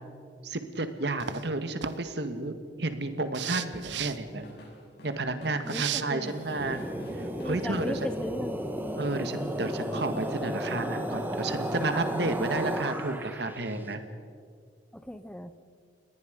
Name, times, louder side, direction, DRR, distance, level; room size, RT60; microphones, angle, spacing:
voice 1, 0.4-4.5 5.0-6.8 7.1-8.0 9.0-14.0, right 2 dB, 70° right, 8 dB, 1.8 m, -32 dB
sound 1, 1.2-1.4 1.8-1.9 3.3-4.2 5.7-6.0, right 10 dB, 85° right, 0.9 m, -33 dB
Drum kit / Drum, 3.7-8.5, equal, 65° left, 6.5 m, -50 dB
voice 2, 5.6-6.3 7.4-8.8 14.9-15.5, equal, 5° left, 11 dB, 0.7 m, -37 dB
sound 2, 6.3-13.7, equal, 10° right, 1.6 m, -33 dB
30.0 x 20.5 x 5.3 m, 2.1 s
head